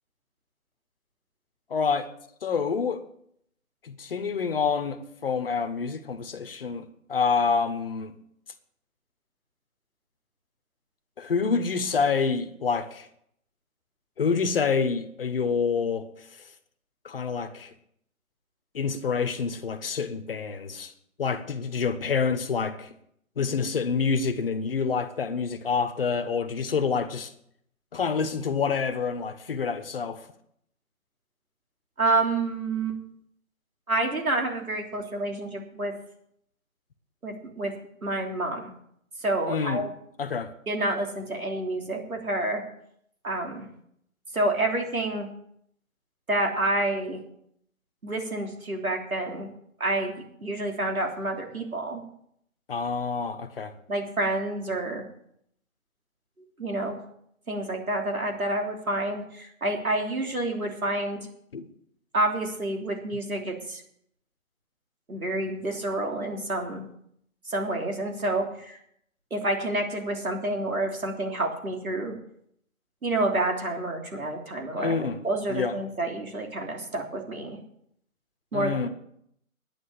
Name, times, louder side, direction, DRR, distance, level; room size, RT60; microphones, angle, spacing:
voice 1, 1.7-2.1 2.4-3.0 3.8-8.1 11.2-13.1 14.2-16.1 17.0-17.7 18.7-20.9 21.2-22.9 23.4-27.3 27.9-30.2 39.5-39.8 40.2-40.5 52.7-53.7 61.5-61.7 74.7-75.2 75.5-75.8 78.5-78.9, left 5 dB, 40° left, 1.2 m, -27 dB
voice 2, 32.0-33.0 33.9-35.9 37.2-37.7 38.0-38.7 39.2-39.9 40.7-42.6 43.2-43.7 44.3-45.3 46.3-47.2 48.0-49.5 49.8-52.0 53.9-55.0 56.6-57.0 57.5-61.2 62.1-63.8 65.1-66.9 67.5-68.8 69.3-72.2 73.0-77.6 78.5-78.9, right 2 dB, 85° right, 3.3 m, -28 dB
10.0 x 9.6 x 7.1 m
figure-of-eight pair, 155°, 42 cm